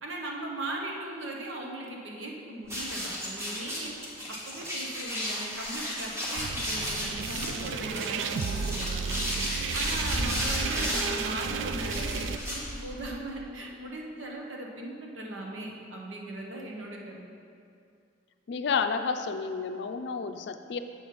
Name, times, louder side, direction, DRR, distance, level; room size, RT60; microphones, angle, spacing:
voice 1, 0.0-3.9 4.5-9.2 9.7-17.2, right 1 dB, 85° right, -1 dB, 1.1 m, -38 dB
sound 1, 2.7-13.1, equal, 15° right, 1.4 m, -33 dB
sound 2, 6.4-12.4, right 6 dB, 70° right, 0.3 m, -33 dB
voice 2, 18.5-20.8, left 5 dB, 65° left, 8 dB, 0.4 m, -30 dB
7.1 x 5.2 x 5.5 m, 2.4 s
head